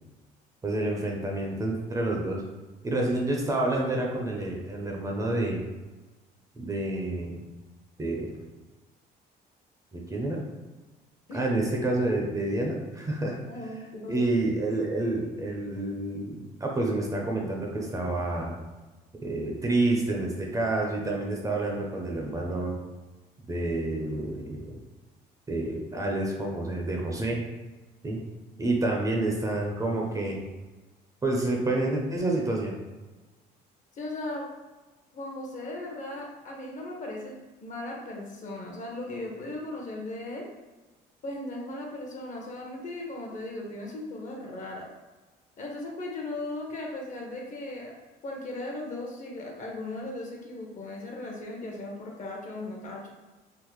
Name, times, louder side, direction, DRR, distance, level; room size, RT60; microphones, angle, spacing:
voice 1, 0.6-2.4 2.8-5.6 6.6-7.4 8.0-8.3 9.9-10.4 11.3-13.4 14.1-18.6 19.2-22.8 23.5-24.8 25.5-27.4 28.0-28.2 28.6-30.4 31.2-32.8, right 2 dB, 20° right, -1 dB, 0.5 m, -28 dB
voice 2, 13.5-14.3 33.9-34.5 35.1-37.3 37.6-40.5 41.2-44.9 45.6-47.9 48.2-53.1, left 2 dB, 50° left, 0 dB, 0.8 m, -37 dB
3.6 x 2.0 x 3.1 m, 1.2 s
cardioid pair, 110°, 17 cm